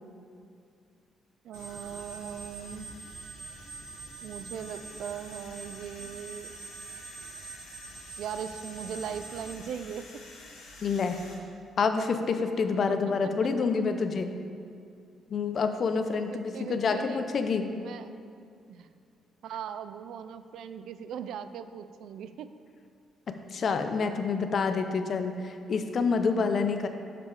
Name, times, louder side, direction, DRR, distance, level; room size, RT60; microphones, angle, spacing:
voice 1, 1.4-2.9 4.2-6.5 8.2-10.1 12.9-13.0 16.2-17.3 17.7-18.2 18.7-18.9 19.4-22.5, right 8 dB, 75° right, 11 dB, 0.3 m, -39 dB
sound 1, 1.5-11.3, left 2 dB, 90° left, 1.3 m, -50 dB
sound 2, 1.5-9.5, right 4 dB, 55° right, 0.7 m, -45 dB
voice 2, 10.8-11.2 11.8-14.3 15.3-17.7 23.3-26.9, left 5 dB, 50° left, 7 dB, 0.5 m, -28 dB
6.8 x 5.9 x 4.7 m, 2.4 s
cardioid pair, 90°, 0 cm